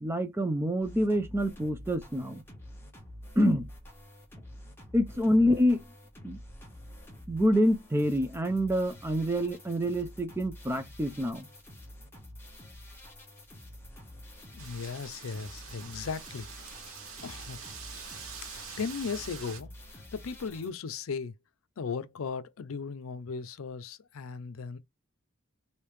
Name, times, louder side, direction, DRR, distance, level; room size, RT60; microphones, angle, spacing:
voice 1, 0.0-2.4 3.4-3.6 4.9-5.8 6.2-6.4 7.3-11.5, equal, 10° right, 0.4 m, -26 dB
sound 1, 0.8-20.7, left 1 dB, 10° left, 1.1 m, -48 dB
voice 2, 14.5-16.5 17.2-17.6 18.4-21.3 21.8-24.8, left 5 dB, 75° left, 0.5 m, -37 dB
Wind, 14.6-19.6, right 6 dB, 85° right, 1.2 m, -45 dB
3.3 x 2.7 x 3.2 m
head